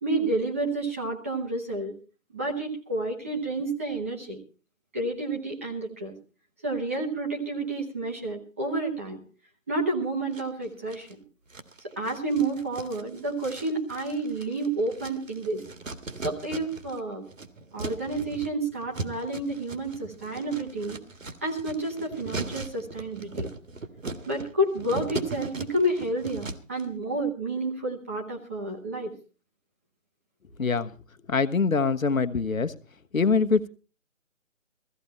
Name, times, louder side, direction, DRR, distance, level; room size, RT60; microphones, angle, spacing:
voice 1, 0.0-1.9 2.3-4.4 4.9-6.1 6.6-9.2 9.7-11.1 12.0-15.6 16.2-17.2 17.7-21.0 21.4-23.5 24.3-29.1, right 2 dB, 10° right, -1 dB, 0.9 m, -30 dB
sound 1, 10.3-11.1 11.5-17.0 17.2-26.8, right 3 dB, 70° right, 2.0 m, -38 dB
voice 2, 30.6-30.9 31.3-32.7 33.1-33.7, left 4 dB, 75° left, 10 dB, 1.3 m, -24 dB
16.0 x 15.0 x 4.3 m, 0.36 s
figure-of-eight pair, 160°, 41 cm